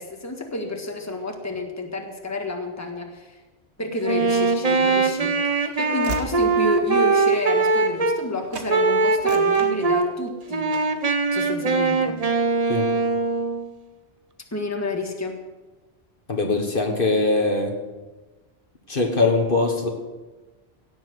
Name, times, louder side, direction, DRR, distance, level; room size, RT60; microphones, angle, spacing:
voice 1, 0.0-3.4 3.8-10.8 11.3-12.2 14.5-15.4, left 2 dB, 15° left, 3 dB, 1.6 m, -30 dB
Wind instrument woodwind instrument, 4.0-8.2 8.7-10.1 10.5-13.7, right 4 dB, 35° right, 1.0 m, -21 dB
Train / Slam, 4.6-8.3 8.5-8.7 9.1-10.3 10.7-11.0, right 2 dB, 85° right, 1.6 m, -39 dB
voice 2, 16.3-17.8 18.9-19.9, left 3 dB, 55° left, 3 dB, 1.7 m, -22 dB
17.0 x 7.3 x 8.0 m, 1.2 s
omnidirectional pair, 1.1 m